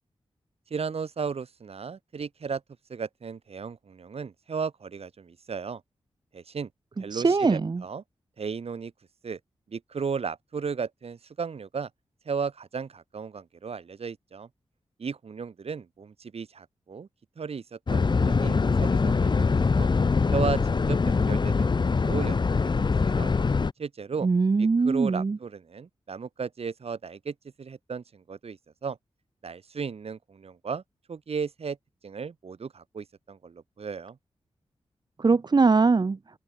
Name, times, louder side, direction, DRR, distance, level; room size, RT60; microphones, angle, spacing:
voice 1, 0.7-2.6 2.9-5.8 6.3-6.7 7.0-8.0 8.4-8.9 9.2-9.4 9.7-11.9 12.3-14.5 15.0-17.1 17.4-19.9 20.3-20.6 20.9-22.4 22.6-23.3 23.8-24.3 24.6-29.0 29.4-30.8 31.1-31.8 32.0-34.2, right 5 dB, 70° right, 3.7 m, -35 dB
voice 2, 7.1-7.8 24.2-25.4 35.2-36.2, right 4 dB, 40° right, 0.9 m, -22 dB
sound 1, 17.9-23.7, left 4 dB, 45° left, 0.9 m, -23 dB
open air
cardioid pair, 65°, 11 cm